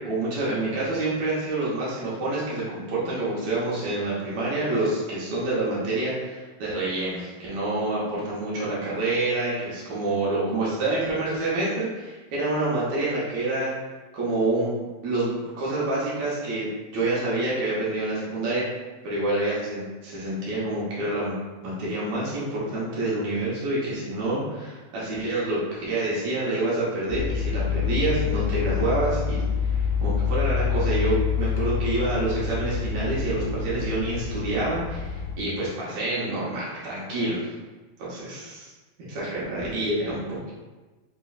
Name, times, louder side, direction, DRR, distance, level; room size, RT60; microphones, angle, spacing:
voice 1, 0.0-13.7 14.1-16.7 16.9-18.6 19.0-21.3 21.6-37.4 38.0-38.7 39.0-40.5, right 2 dB, 70° right, -7 dB, 1.7 m, -27 dB
sound 1, 27.1-35.4, left 6 dB, 75° left, 2.4 m, -27 dB
5.5 x 3.0 x 2.4 m, 1.2 s
omnidirectional pair, 4.4 m